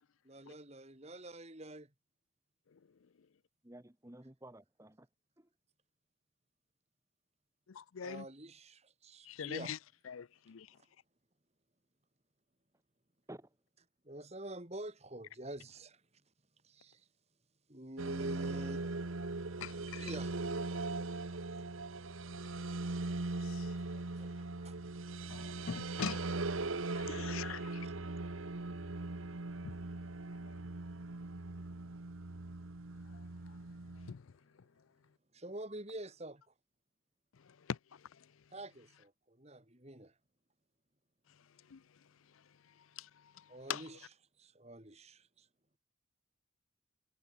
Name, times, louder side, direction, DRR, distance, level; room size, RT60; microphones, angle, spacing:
voice 1, 0.2-1.9 8.0-9.7 14.0-16.0 16.6-17.0 17.7-18.8 19.9-20.3 24.2-24.8 26.0-26.1 27.8-27.9 31.6-31.7 35.3-36.4 38.5-40.1 43.5-44.1 44.4-45.5, right 1 dB, 30° right, 3.0 m, -47 dB
voice 2, 3.6-5.1 5.4-5.5 13.3-13.5, right 1 dB, 15° right, 1.1 m, -53 dB
voice 3, 7.7-8.3 9.3-9.8 10.1-10.7 19.6-20.1 23.4-23.7 25.3-26.3 26.9-27.8 29.6-29.7 34.1-34.2 37.7-37.8 41.7-41.8 43.0-43.1 43.7-43.8, left 7 dB, 85° left, 0.5 m, -42 dB
sound 1, 18.0-34.1, right 3 dB, 85° right, 1.3 m, -40 dB
head